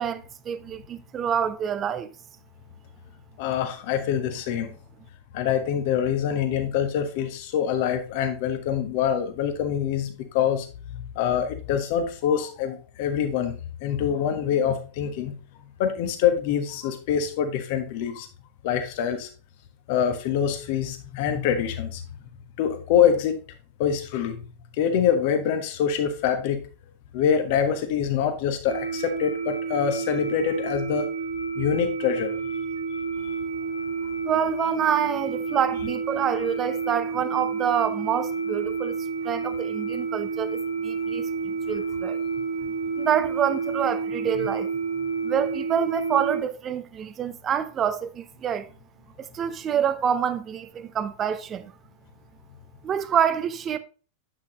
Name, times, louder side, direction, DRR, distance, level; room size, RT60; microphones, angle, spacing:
voice 1, 0.0-2.1 34.2-39.0 39.2-42.2 43.0-44.7 45.2-48.7 49.2-51.7 52.8-53.8, right 8 dB, 25° right, 0.6 m, -27 dB
voice 2, 3.4-4.7 5.3-10.7 10.9-13.5 13.8-15.3 15.8-18.3 18.6-19.3 19.9-22.0 22.6-23.4 23.8-24.4 24.8-26.6 27.1-31.1 31.6-32.4, left 8 dB, 50° left, 1.3 m, -25 dB
sound 1, 28.7-46.4, right 5 dB, 70° right, 1.1 m, -30 dB
8.5 x 6.0 x 3.1 m
figure-of-eight pair, 90°, 0 cm